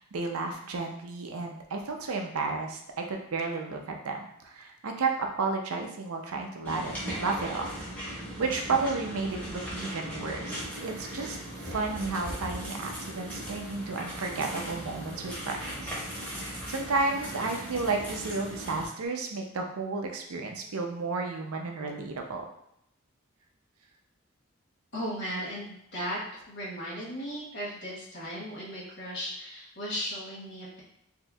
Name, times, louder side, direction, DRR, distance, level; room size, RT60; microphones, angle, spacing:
voice 1, 0.0-3.8 4.0-4.2 4.4-7.7 8.1-22.4, right 3 dB, 90° right, 2 dB, 0.6 m, -32 dB
sound 1, 6.6-18.9, equal, 10° left, 1.0 m, -38 dB
voice 2, 24.9-26.2 26.5-30.8, equal, 55° left, -6 dB, 1.3 m, -36 dB
4.2 x 2.8 x 2.3 m, 0.76 s
head